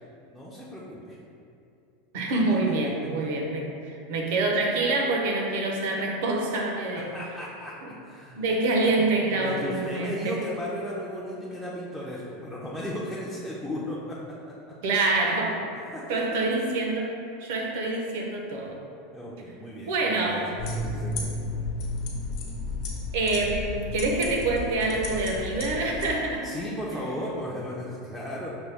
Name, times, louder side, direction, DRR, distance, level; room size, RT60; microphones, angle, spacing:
voice 1, 0.3-1.2 2.1-2.4 3.0-3.1 7.0-8.4 9.0-9.1 9.3-14.8 15.9-16.2 19.1-21.3 26.4-28.5, equal, ahead, -7 dB, 0.4 m, -36 dB
voice 2, 2.1-7.1 7.8-7.9 8.4-10.4 14.8-15.6 16.1-18.8 19.9-20.5 23.1-26.5 26.9-27.0, right 2 dB, 70° right, 1 dB, 0.7 m, -26 dB
sound 1, 20.6-26.1, left 2 dB, 45° left, 0.8 m, -33 dB
6.0 x 2.2 x 3.3 m, 2.6 s
supercardioid pair, 155°, 0 cm